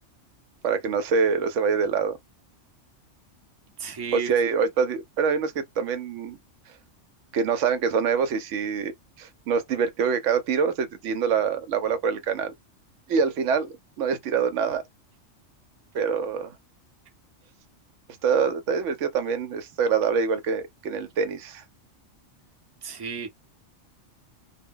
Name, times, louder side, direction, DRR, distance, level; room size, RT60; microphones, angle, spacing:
voice 1, 0.6-2.2 4.1-6.4 7.3-12.5 13.1-14.8 15.9-16.6 18.2-21.6, right 6 dB, 80° right, 0.9 m, -25 dB
voice 2, 3.8-4.3 22.8-23.3, right 6 dB, 25° right, 0.6 m, -33 dB
2.2 x 2.1 x 3.6 m
omnidirectional pair, 1.3 m